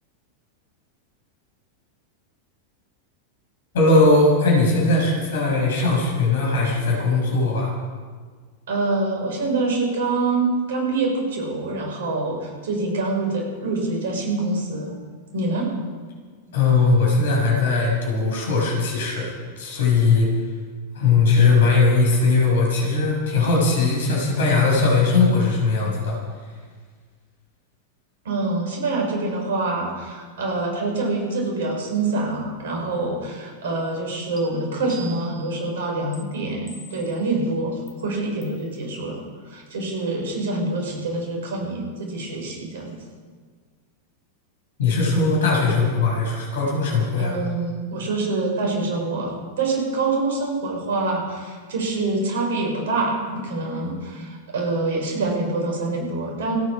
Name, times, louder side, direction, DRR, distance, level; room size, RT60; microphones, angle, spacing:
voice 1, 3.7-7.7 16.5-20.3 20.9-26.2 44.8-47.4, left 3 dB, 60° left, -1 dB, 6.1 m, -19 dB
voice 2, 8.7-14.9 15.3-15.7 28.2-39.2 39.5-42.9 47.2-56.6, right 3 dB, 60° right, 0 dB, 5.8 m, -25 dB
sound 1, 34.4-34.5 34.9-35.5 36.1-36.2 36.7-37.2 37.9-38.0 38.4-38.6, right 4 dB, 10° right, 2.9 m, -43 dB
28.5 x 9.9 x 5.1 m, 1.6 s
figure-of-eight pair, 90°, 0 cm